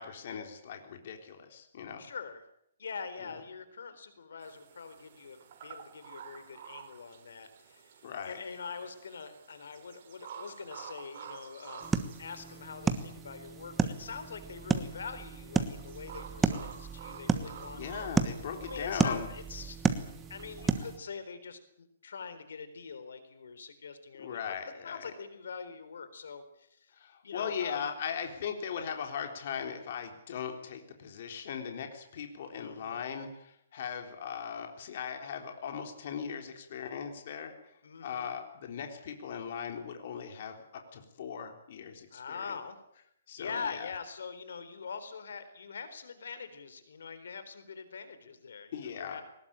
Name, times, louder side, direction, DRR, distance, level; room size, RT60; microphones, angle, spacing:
voice 1, 0.0-2.0 8.0-8.4 17.7-19.3 24.2-25.1 27.0-37.5 38.0-42.5 43.3-43.9 48.7-49.2, left 7 dB, 45° left, 4 dB, 3.7 m, -39 dB
voice 2, 2.0-2.4 2.8-17.8 18.6-19.8 20.3-24.4 24.8-26.9 27.2-27.9 32.5-33.0 37.8-38.3 42.1-42.8 43.4-49.2, left 5 dB, 75° left, 11 dB, 3.9 m, -44 dB
sound 1, 4.4-20.9, right 7 dB, 40° right, 4.3 m, -51 dB
sound 2, 11.8-21.0, right 5 dB, 10° right, 1.3 m, -33 dB
22.0 x 20.0 x 8.9 m, 0.75 s
hypercardioid pair, 170°, 0 cm